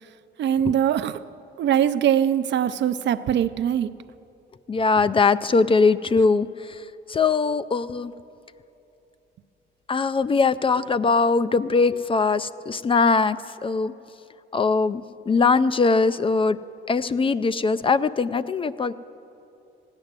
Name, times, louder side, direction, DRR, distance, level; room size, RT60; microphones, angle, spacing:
voice 1, 0.4-1.2 1.6-3.9, right 9 dB, 65° right, 0.5 m, -22 dB
voice 2, 4.7-8.1 9.9-13.4 13.6-13.9 14.5-16.6 16.9-18.9, left 4 dB, 25° left, 0.4 m, -21 dB
16.0 x 9.7 x 7.4 m
cardioid pair, 90°, 20 cm